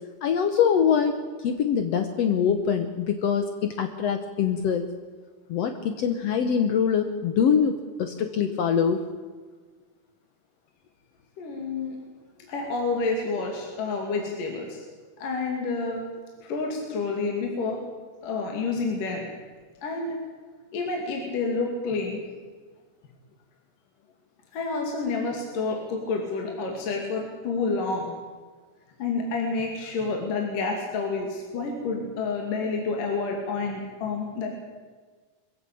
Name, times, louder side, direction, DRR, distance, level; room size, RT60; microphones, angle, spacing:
voice 1, 0.2-4.9 5.5-9.0, left 7 dB, 85° left, 7 dB, 1.4 m, -24 dB
voice 2, 11.4-12.0 12.5-14.8 15.2-16.0 16.4-17.8 18.2-19.2 19.8-20.2 20.7-22.2 24.5-28.1 29.0-34.5, left 4 dB, 60° left, 1 dB, 4.0 m, -29 dB
22.5 x 15.5 x 8.5 m, 1.4 s
omnidirectional pair, 4.5 m